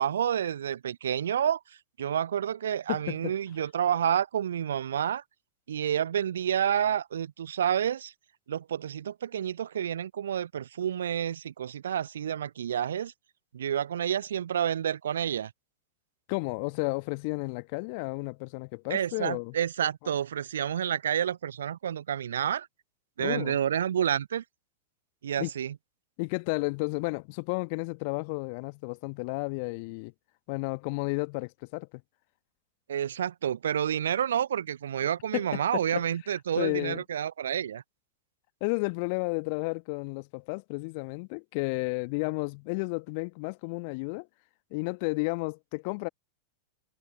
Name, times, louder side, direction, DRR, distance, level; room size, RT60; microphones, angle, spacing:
voice 1, 0.0-1.6 2.0-5.2 5.7-8.1 8.5-13.1 13.5-15.5 18.9-22.7 23.2-24.4 25.2-25.7 32.9-37.8, right 9 dB, 65° right, 0.4 m, -29 dB
voice 2, 2.9-3.4 16.3-19.5 23.2-23.6 25.4-25.5 26.2-30.1 30.5-31.9 35.3-36.0 36.6-37.0 38.6-44.3 44.7-46.1, left 31 dB, 45° left, 1.3 m, -32 dB
figure-of-eight pair, 90°, 0 cm